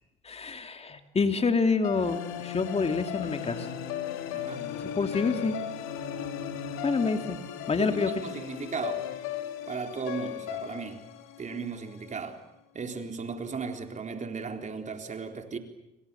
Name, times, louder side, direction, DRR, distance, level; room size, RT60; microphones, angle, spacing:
voice 1, 0.2-3.7 4.8-5.5 6.8-7.4 7.7-8.1, left 4 dB, 30° left, 2.6 m, -27 dB
sound 1, 1.8-12.1, left 9 dB, 75° left, 3.3 m, -36 dB
voice 2, 4.3-4.7 7.8-9.1 9.7-11.0 11.4-12.4 12.7-15.6, right 5 dB, 35° right, 3.9 m, -36 dB
29.5 x 25.0 x 7.0 m
hypercardioid pair, 70°, 21 cm